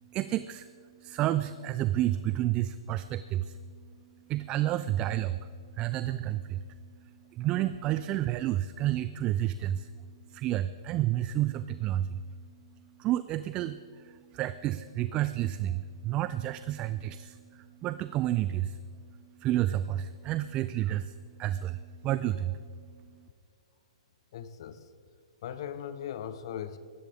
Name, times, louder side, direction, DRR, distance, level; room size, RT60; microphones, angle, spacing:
voice 1, 0.0-3.7 4.3-9.9 10.3-12.2 13.0-23.2, right 13 dB, 30° right, 13 dB, 0.5 m, -31 dB
voice 2, 24.3-24.9 25.4-26.8, left 9 dB, 55° left, 12 dB, 1.0 m, -39 dB
19.5 x 13.5 x 3.6 m, 2.2 s
hypercardioid pair, 125°, 3 cm